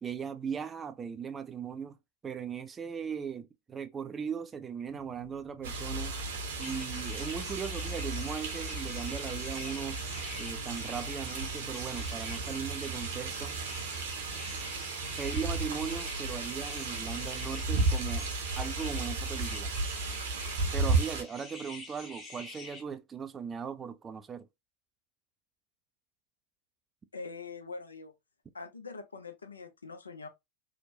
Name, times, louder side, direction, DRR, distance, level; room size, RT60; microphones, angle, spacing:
voice 1, 0.0-2.0 2.2-6.2 6.6-10.0 10.4-13.6 15.2-18.3 18.6-19.7 20.7-24.5, right 7 dB, 20° right, 0.3 m, -38 dB
sound 1, 4.9-15.8, right 3 dB, 35° left, 1.5 m, -53 dB
sound 2, 5.6-21.2, right 3 dB, 60° right, 0.7 m, -34 dB
sound 3, 6.6-22.8, left 3 dB, 20° left, 1.0 m, -47 dB
voice 2, 27.1-28.1 28.5-30.3, left 4 dB, 75° left, 0.4 m, -43 dB
2.8 x 2.1 x 2.7 m
figure-of-eight pair, 90°, 0 cm